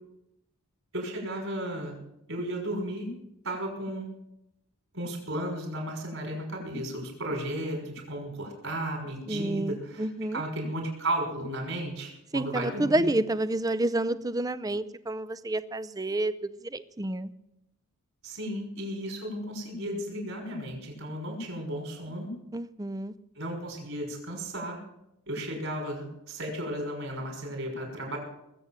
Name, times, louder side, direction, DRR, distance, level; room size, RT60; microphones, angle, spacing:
voice 1, 0.9-2.0 2.3-3.1 3.4-4.1 4.9-10.1 10.3-13.1 18.2-22.3 23.4-24.8 25.3-28.2, right 1 dB, 60° right, 1 dB, 5.8 m, -34 dB
voice 2, 9.3-10.4 12.3-17.3 22.5-23.1, right 1 dB, 15° right, 14 dB, 0.5 m, -29 dB
20.5 x 8.2 x 7.4 m, 0.84 s
head